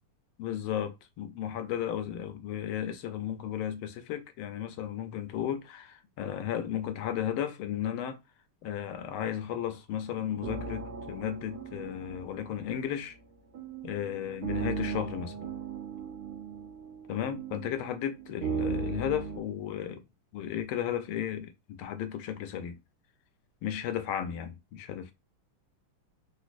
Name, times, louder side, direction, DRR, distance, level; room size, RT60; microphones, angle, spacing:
voice 1, 0.4-8.2 8.6-13.2 13.8-15.5 17.1-20.0 20.3-22.8 23.6-25.1, left 10 dB, 80° left, 1.4 m, -34 dB
sound 1, 10.4-19.4, right 5 dB, 80° right, 1.7 m, -37 dB
4.0 x 2.4 x 2.5 m
omnidirectional pair, 2.4 m